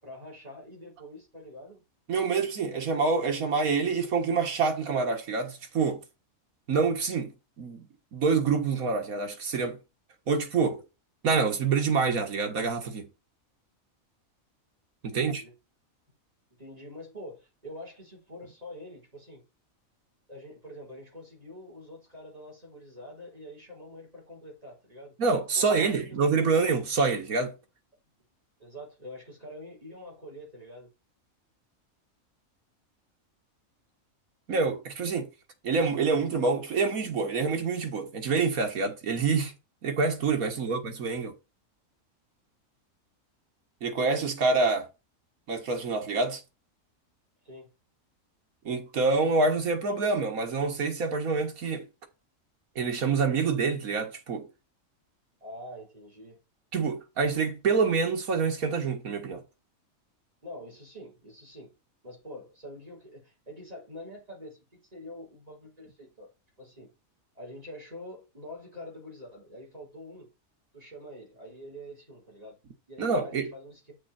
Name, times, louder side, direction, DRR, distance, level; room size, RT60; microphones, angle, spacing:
voice 1, 0.0-1.8 15.1-15.5 16.6-19.4 20.3-25.1 25.5-26.0 28.6-30.9 40.4-40.8 47.4-47.7 55.4-56.4 60.4-61.7 62.0-66.3 66.6-66.9 67.3-70.3 70.7-72.6 72.9-74.0, equal, 25° right, 4.3 m, -45 dB
voice 2, 2.1-6.0 6.7-7.8 8.1-9.8 10.3-10.8 11.2-13.1 15.0-15.4 25.2-27.5 34.5-35.3 35.6-39.5 39.8-41.3 43.8-44.9 45.5-46.4 48.7-51.9 52.8-54.5 56.7-59.4 73.0-73.5, right 4 dB, 85° right, 2.0 m, -26 dB
8.6 x 6.2 x 4.3 m
omnidirectional pair, 1.4 m